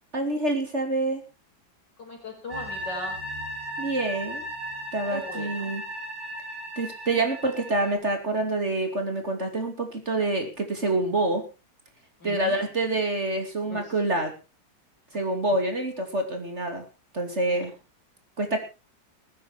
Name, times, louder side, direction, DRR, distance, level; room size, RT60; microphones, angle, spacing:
voice 1, 0.1-1.2 3.8-4.4 4.9-5.8 6.8-11.4 12.2-14.3 15.1-16.8 17.1-17.7 18.4-18.6, right 2 dB, 35° right, 5 dB, 3.0 m, -27 dB
voice 2, 2.0-3.2 5.1-5.7 12.2-12.6 13.7-13.9 17.5-17.7, left 2 dB, 65° left, 2 dB, 5.7 m, -38 dB
sound 1, 2.5-8.0, equal, 55° right, 3.4 m, -36 dB
20.0 x 10.0 x 4.5 m, 0.31 s
omnidirectional pair, 2.0 m